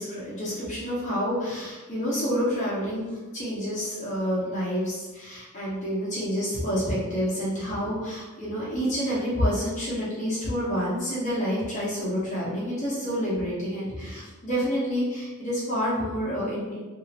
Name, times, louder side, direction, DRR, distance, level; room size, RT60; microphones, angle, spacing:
voice 1, 0.0-16.8, equal, 35° left, -8 dB, 1.0 m, -28 dB
2.9 x 2.8 x 2.9 m, 1.2 s
head